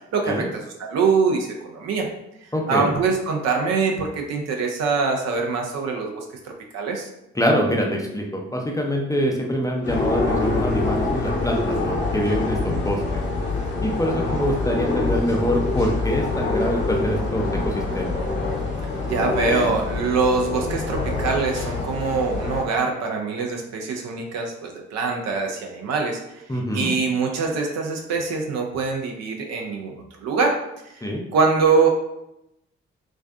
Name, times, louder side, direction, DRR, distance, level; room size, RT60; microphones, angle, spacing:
voice 1, 0.1-2.1 2.7-7.1 19.1-26.2 26.7-30.6 30.9-31.0 31.3-31.9, right 4 dB, 60° right, 2 dB, 0.5 m, -23 dB
voice 2, 2.5-3.0 7.3-13.2 13.8-18.1 26.5-26.9 31.0-31.2, equal, 10° left, 0 dB, 0.5 m, -25 dB
sound 1, 9.8-22.6, left 3 dB, 35° left, 0.8 m, -25 dB
2.4 x 2.2 x 2.4 m, 0.85 s
hypercardioid pair, 40°, 30 cm